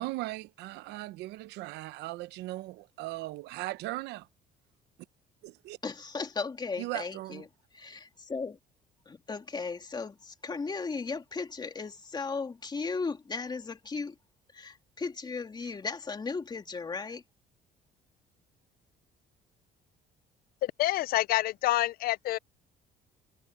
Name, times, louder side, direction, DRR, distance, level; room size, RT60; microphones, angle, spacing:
voice 1, 0.0-4.3 5.4-5.8 6.8-7.4, right 18 dB, 90° right, 0.8 m, -38 dB
voice 2, 5.8-8.6 9.1-14.2 14.5-17.2, left 4 dB, 25° left, 2.7 m, -36 dB
voice 3, 20.6-22.4, left 16 dB, 60° left, 0.4 m, -27 dB
cardioid pair, 110°, 17 cm